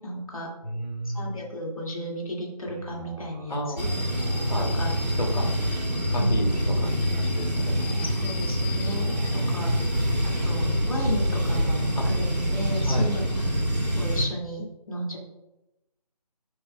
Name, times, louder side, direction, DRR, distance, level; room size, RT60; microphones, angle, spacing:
voice 1, 0.0-0.5 1.0-3.9 4.6-4.9 6.2-6.5 8.0-9.7 10.2-13.3 14.0-15.2, equal, 55° left, -1 dB, 2.1 m, -34 dB
voice 2, 0.6-1.4 3.5-4.1 4.5-4.7 5.2-5.7 6.1-7.7 9.3-9.9 12.0-12.1 12.9-13.1, equal, 80° left, 0 dB, 2.3 m, -31 dB
sound 1, 2.7-12.3, right 1 dB, 15° right, 0.8 m, -43 dB
sound 2, 3.8-14.3, equal, 85° right, 2.2 m, -26 dB
8.6 x 7.7 x 2.3 m, 0.96 s
figure-of-eight pair, 160°, 21 cm